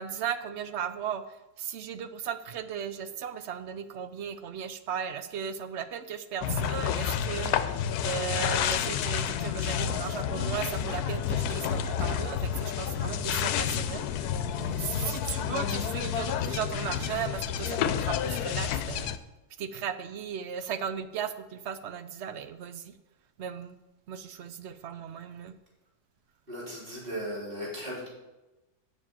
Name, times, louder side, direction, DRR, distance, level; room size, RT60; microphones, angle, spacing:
voice 1, 0.0-14.3 14.6-19.1 19.6-22.9 23.4-23.8 24.1-25.6, right 8 dB, 60° right, 11 dB, 0.8 m, -36 dB
sound 1, 6.4-19.2, left 9 dB, 85° left, 1.1 m, -30 dB
voice 2, 26.5-28.1, equal, 35° right, -6 dB, 3.9 m, -36 dB
7.3 x 6.6 x 7.4 m, 1.0 s
omnidirectional pair, 1.6 m